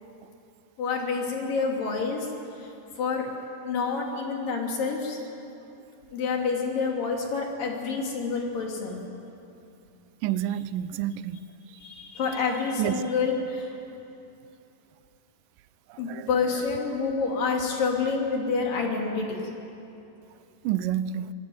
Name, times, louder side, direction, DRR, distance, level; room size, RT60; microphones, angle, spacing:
voice 1, 0.8-2.3 2.6-3.3 3.6-5.2 6.1-9.0 11.8-13.7 16.0-19.3, left 4 dB, 80° left, 4.6 m, -28 dB
voice 2, 10.2-11.4 12.8-13.0 15.9-16.3 20.6-21.3, right 11 dB, 85° right, 2.4 m, -29 dB
25.5 x 20.5 x 9.3 m
omnidirectional pair, 3.8 m